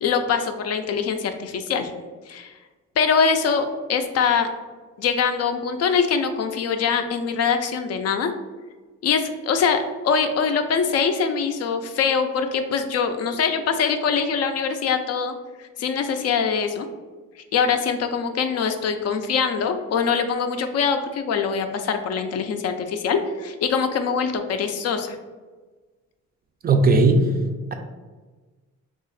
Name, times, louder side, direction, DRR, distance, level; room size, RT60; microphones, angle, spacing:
voice 1, 0.0-1.9 2.3-2.6 3.0-4.5 5.0-8.3 9.0-16.9 17.5-25.2, left 6 dB, 55° left, 7 dB, 0.4 m, -23 dB
voice 2, 26.6-27.3, right 3 dB, 30° right, 5 dB, 0.4 m, -16 dB
2.8 x 2.4 x 3.9 m, 1.3 s
cardioid pair, 90°, 30 cm